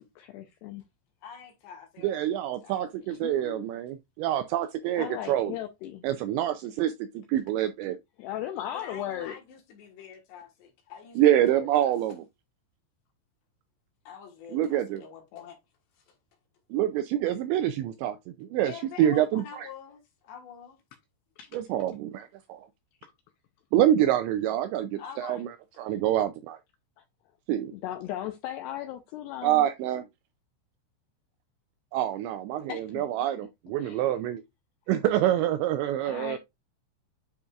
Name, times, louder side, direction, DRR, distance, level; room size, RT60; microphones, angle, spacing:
voice 1, 0.2-0.8 3.1-3.7 5.0-6.0 8.2-9.4 21.4-21.5 23.0-23.1 27.0-27.1 27.7-29.7 32.7-33.3 33.8-34.0 36.0-36.4, left 12 dB, 90° left, 2.3 m, -37 dB
voice 2, 1.2-3.1 8.7-12.0 14.0-15.6 15.9-16.2 18.7-20.8 25.0-25.4 25.7-25.8, left 8 dB, 70° left, 3.3 m, -46 dB
voice 3, 2.0-5.5 6.0-8.0 11.2-12.2 14.5-15.0 16.7-18.7 19.0-19.7 21.5-22.7 23.7-25.5 25.8-26.6 27.5-27.7 29.4-30.0 31.9-34.4 34.9-36.4, right 12 dB, 85° right, 2.6 m, -26 dB
9.5 x 5.2 x 2.4 m
omnidirectional pair, 5.6 m